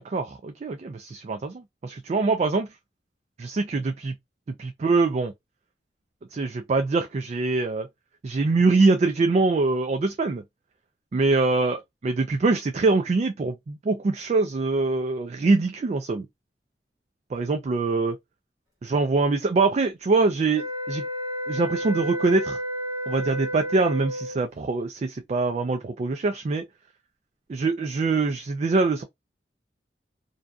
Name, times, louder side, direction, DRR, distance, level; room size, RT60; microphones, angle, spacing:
voice 1, 0.0-2.7 3.4-4.1 4.6-5.3 6.3-7.9 8.2-10.4 11.1-16.3 17.3-18.1 18.8-21.0 21.5-22.6 23.1-26.6 27.5-29.0, right 3 dB, 40° right, 0.3 m, -24 dB
sound 1, 20.5-24.4, equal, 20° right, 1.2 m, -31 dB
2.6 x 2.2 x 2.3 m
head